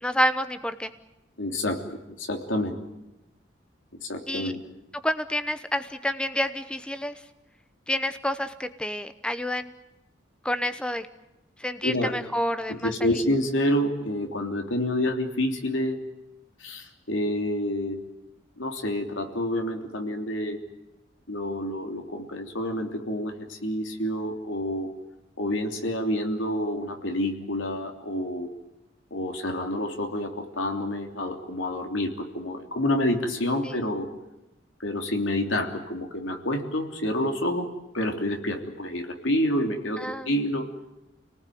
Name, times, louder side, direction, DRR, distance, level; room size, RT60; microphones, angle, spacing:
voice 1, 0.0-0.9 4.3-4.5 5.0-7.1 7.9-9.7 10.4-11.1 11.6-12.9 33.6-33.8 40.0-40.3, equal, 5° left, 11 dB, 0.9 m, -28 dB
voice 2, 1.4-1.8 2.1-2.8 4.0-4.6 11.8-12.2 12.7-16.0 16.6-18.0 18.6-20.6 21.3-24.9 25.4-28.5 29.1-34.1 34.8-40.7, left 1 dB, 80° left, 4 dB, 3.2 m, -28 dB
26.5 x 19.5 x 9.3 m, 0.95 s
head